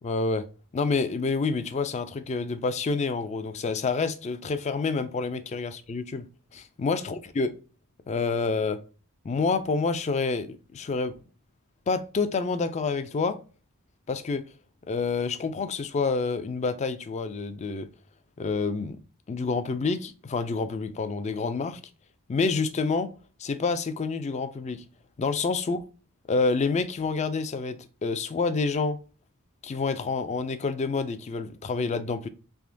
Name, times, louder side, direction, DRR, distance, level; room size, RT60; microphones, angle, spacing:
voice 1, 0.0-0.4 0.7-6.3 6.5-7.5 8.1-8.8 9.2-11.1 11.9-13.4 14.1-14.4 14.9-17.9 18.4-19.0 19.3-21.8 22.3-23.1 23.4-24.8 25.2-25.8 26.3-29.0 29.6-32.3, left 4 dB, 30° left, 0.3 m, -28 dB
3.5 x 2.9 x 2.5 m
head